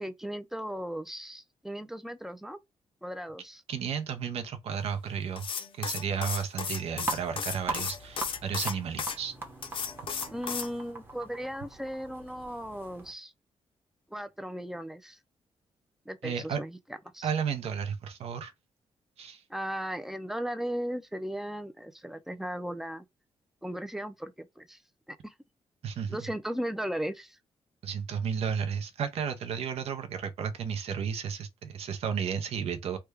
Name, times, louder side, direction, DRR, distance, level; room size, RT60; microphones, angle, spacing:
voice 1, 0.0-2.6 3.0-3.6 10.3-13.3 14.1-15.2 16.1-16.8 17.1-17.3 19.5-23.0 23.6-24.8 25.1-25.3 26.1-27.4, equal, 5° right, 0.4 m, -36 dB
voice 2, 3.7-5.5 5.8-9.4 16.2-16.6 17.2-18.5 19.2-19.4 25.8-26.2 27.8-33.0, right 7 dB, 75° right, 0.6 m, -33 dB
sound 1, 5.4-9.2 9.6-10.7, left 6 dB, 55° left, 0.6 m, -34 dB
sound 2, 7.0-13.1, right 2 dB, 20° right, 0.9 m, -41 dB
3.3 x 2.2 x 3.3 m
cardioid pair, 130°, 11 cm